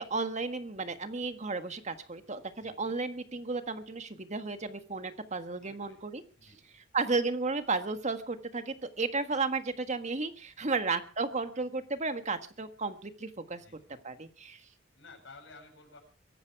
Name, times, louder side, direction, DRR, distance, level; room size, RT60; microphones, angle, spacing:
voice 1, 0.0-6.2 6.9-13.6 14.0-14.6, right 3 dB, 40° right, 9 dB, 1.6 m, -33 dB
voice 2, 2.5-2.8 5.6-6.0 6.4-6.7 10.6-10.8 13.5-13.9 14.9-16.0, left 3 dB, 80° left, 2 dB, 7.8 m, -54 dB
23.0 x 11.0 x 4.7 m, 0.38 s
head